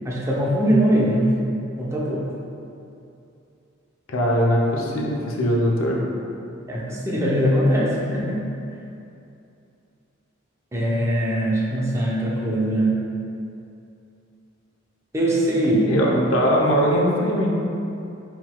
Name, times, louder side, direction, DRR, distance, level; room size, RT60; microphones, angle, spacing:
voice 1, 0.0-1.3 1.8-2.3 6.7-8.4 10.7-13.0 15.1-15.9, equal, 15° right, -5 dB, 0.6 m, -21 dB
voice 2, 4.1-6.0 15.9-17.6, equal, 90° left, -2 dB, 0.6 m, -20 dB
4.5 x 3.8 x 2.2 m, 2.6 s
head